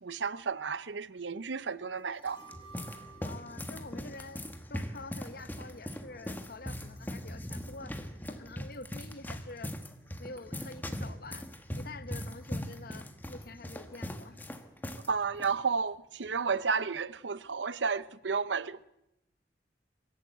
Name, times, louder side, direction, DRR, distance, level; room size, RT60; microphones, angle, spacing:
voice 1, 0.0-2.4 15.1-18.8, right 5 dB, 85° right, 0.8 m, -32 dB
sound 1, 2.1-5.3 5.6-5.7, right 4 dB, 25° left, 6.7 m, -55 dB
sound 2, 2.2-15.1 15.3-15.5 16.2-16.5, equal, 10° left, 1.5 m, -40 dB
voice 2, 3.2-4.4 4.7-9.8 10.2-14.4, left 3 dB, 55° left, 1.0 m, -47 dB
25.0 x 13.5 x 8.2 m
head